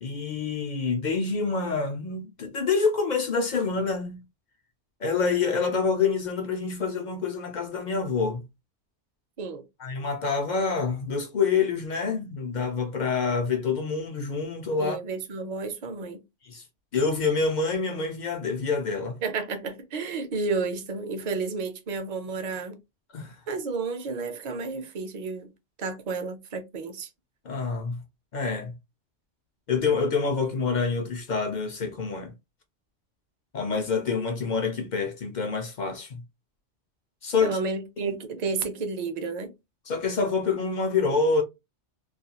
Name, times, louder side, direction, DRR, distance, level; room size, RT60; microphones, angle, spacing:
voice 1, 0.0-4.2 5.0-8.4 9.8-15.0 16.5-16.6 16.9-19.2 23.1-23.4 27.4-28.0 28.3-28.7 29.7-32.3 33.5-36.2 37.2-37.6 38.0-38.1 39.9-41.4, left 4 dB, 55° left, 0.5 m, -27 dB
voice 2, 14.8-16.2 19.2-22.8 23.5-25.5 25.8-27.1 37.4-39.5, right 4 dB, 45° right, 0.6 m, -31 dB
2.4 x 2.2 x 2.8 m
omnidirectional pair, 1.2 m